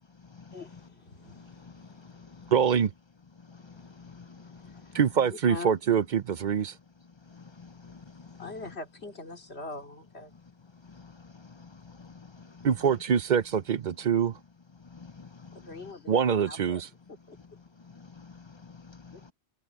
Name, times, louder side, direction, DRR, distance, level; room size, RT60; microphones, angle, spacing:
voice 1, 0.5-2.5 3.5-5.0 5.3-5.7 7.9-8.0 8.3-10.3 15.5-16.8 17.1-17.4 19.1-19.3, left 3 dB, 65° left, 3.0 m, -44 dB
voice 2, 1.3-2.5 3.5-4.8 7.3-8.5 10.9-11.1 11.4-12.7 14.9-15.6 17.9-19.3, left 5 dB, 35° left, 0.5 m, -49 dB
voice 3, 2.5-2.9 4.9-6.7 12.6-14.4 16.1-16.9, right 7 dB, 50° right, 0.6 m, -24 dB
omnidirectional pair, 1.2 m